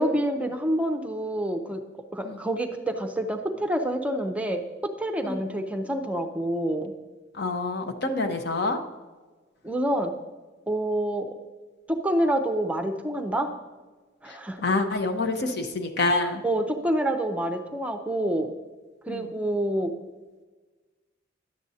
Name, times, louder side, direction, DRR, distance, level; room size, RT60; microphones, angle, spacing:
voice 1, 0.0-1.8 2.1-4.6 5.0-6.9 9.6-10.1 10.7-11.3 11.9-13.5 14.2-14.6 16.4-18.5 19.0-19.9, right 1 dB, 5° right, 5 dB, 0.5 m, -27 dB
voice 2, 7.3-8.8 14.3-16.4 19.1-19.3, left 2 dB, 60° left, 6 dB, 0.8 m, -27 dB
10.5 x 7.6 x 2.7 m, 1.3 s
head